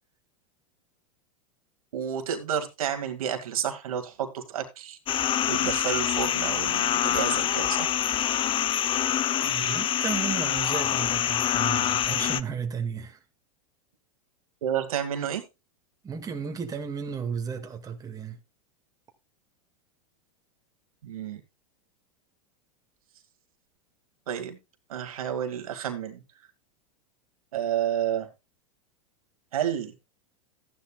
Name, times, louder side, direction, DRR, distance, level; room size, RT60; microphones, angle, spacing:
voice 1, 1.9-5.0 5.5-7.9 14.6-15.4 21.0-21.4 24.3-24.6 24.9-26.2 27.5-28.3 29.5-29.9, right 9 dB, 80° right, 2.0 m, -30 dB
sound 1, 5.1-12.4, left 11 dB, 30° left, 0.6 m, -26 dB
voice 2, 8.8-13.2 16.0-18.4, right 6 dB, 20° right, 1.9 m, -34 dB
14.5 x 10.0 x 2.3 m
hypercardioid pair, 105°, 18 cm